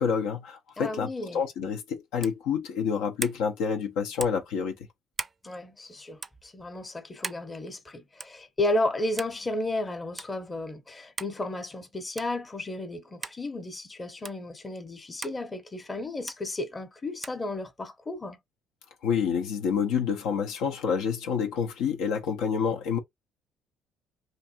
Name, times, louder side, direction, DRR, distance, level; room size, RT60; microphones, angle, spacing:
voice 1, 0.0-4.8 19.0-23.0, left 6 dB, 85° left, 0.7 m, -28 dB
voice 2, 0.8-1.4 5.4-18.4, left 2 dB, 20° left, 0.8 m, -33 dB
sound 1, 2.2-2.4 3.2-3.4 4.2-4.5 5.1-5.4 6.2-6.4 7.2-7.5 8.2-8.4 9.2-9.4 10.2-10.3 11.2-11.4 12.2-12.4 13.2-13.4 14.2-14.4 15.2-15.4 16.3-16.4 17.2-17.4, right 4 dB, 30° right, 0.4 m, -37 dB
3.2 x 2.6 x 2.8 m
supercardioid pair, 85°, 0 cm